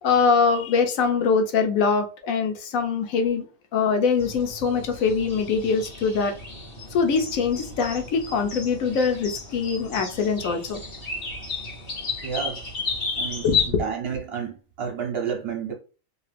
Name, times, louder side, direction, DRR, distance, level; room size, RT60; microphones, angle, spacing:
voice 1, 0.0-3.5 3.7-6.3 6.9-10.8 13.4-13.8, left 5 dB, 90° left, 1.1 m, -23 dB
sound 1, 4.2-13.7, left 4 dB, 45° left, 1.2 m, -33 dB
voice 2, 12.2-12.6 13.2-13.5 13.8-15.7, right 6 dB, 55° right, 0.9 m, -30 dB
2.7 x 2.5 x 3.3 m
omnidirectional pair, 1.4 m